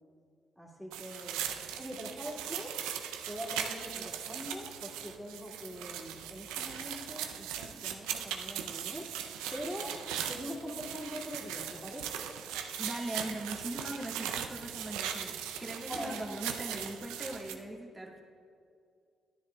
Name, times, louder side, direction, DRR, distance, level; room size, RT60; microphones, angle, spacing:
voice 1, 0.6-1.4 1.7-2.8 3.3-9.1 9.5-9.9 10.2-12.3 15.8-16.2, equal, 5° left, -2 dB, 2.3 m, -43 dB
sound 1, 0.9-17.5, right 9 dB, 85° right, 0.4 m, -39 dB
voice 2, 12.8-18.2, right 1 dB, 20° right, -1 dB, 1.8 m, -40 dB
12.0 x 10.0 x 2.3 m, 2.3 s
hypercardioid pair, 50°, 0 cm